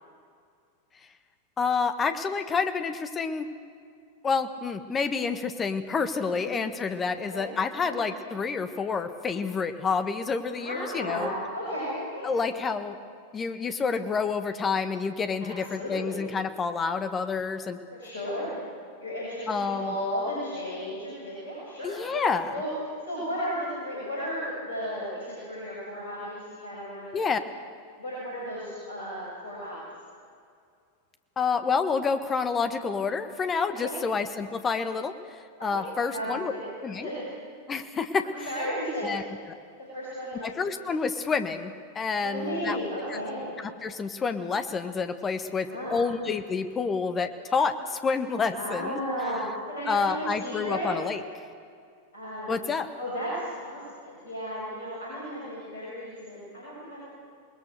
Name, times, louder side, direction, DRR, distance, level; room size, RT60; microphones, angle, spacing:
voice 1, 1.6-3.5 4.2-11.3 12.2-13.0 13.3-17.8 19.5-19.9 21.8-22.6 27.1-27.4 31.4-36.5 36.8-37.1 37.7-38.3 39.0-39.2 40.4-42.8 43.1-43.2 43.6-49.0 49.9-51.2 52.5-52.9, left 5 dB, 20° left, 9 dB, 1.5 m, -28 dB
voice 2, 6.3-6.6 7.3-7.5 7.7-8.0 10.5-12.4 15.4-16.2 17.9-18.5 19.0-22.7 23.1-27.3 28.0-29.8 33.8-33.9 35.7-35.8 36.1-37.3 38.2-39.1 39.9-40.4 42.2-43.5 45.7-46.0 48.5-49.4 49.7-50.9 52.1-52.6 53.0-57.1, equal, 65° left, -6 dB, 7.4 m, -34 dB
28.0 x 20.5 x 6.6 m, 2.2 s
figure-of-eight pair, 90°, 0 cm